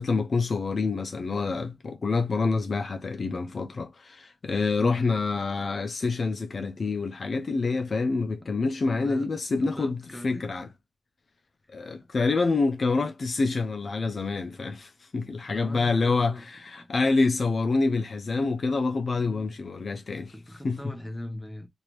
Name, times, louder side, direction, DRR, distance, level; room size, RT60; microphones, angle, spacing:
voice 1, 0.0-10.7 11.7-20.3 20.6-20.9, left 3 dB, 45° left, 0.4 m, -27 dB
voice 2, 4.8-5.1 8.4-8.5 8.8-9.3 9.6-10.5 15.4-16.4 16.8-16.9 20.3-21.7, left 1 dB, 5° left, 0.7 m, -40 dB
3.1 x 2.5 x 3.0 m
wide cardioid pair, 150°, 0 cm